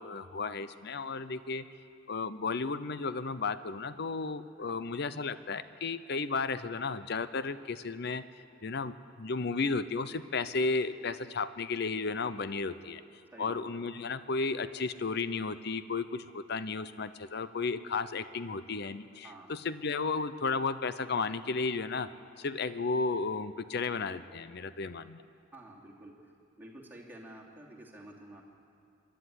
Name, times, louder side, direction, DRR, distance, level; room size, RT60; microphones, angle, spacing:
voice 1, 0.0-1.6 2.1-8.2 8.6-13.0 13.4-22.1 22.4-25.2, left 4 dB, 60° left, 13 dB, 0.7 m, -33 dB
voice 2, 13.3-13.8 19.2-19.6 25.5-26.3 26.6-28.4, right 1 dB, 10° right, -3 dB, 2.8 m, -50 dB
25.0 x 11.5 x 9.9 m, 2.6 s
head